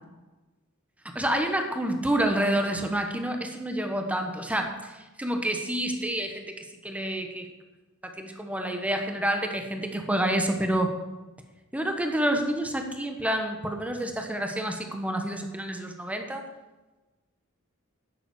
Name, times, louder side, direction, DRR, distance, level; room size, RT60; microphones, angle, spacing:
voice 1, 1.1-4.9 5.2-7.5 8.0-10.9 11.7-16.4, right 1 dB, 5° right, 4 dB, 1.3 m, -28 dB
11.0 x 7.7 x 8.5 m, 1.1 s
head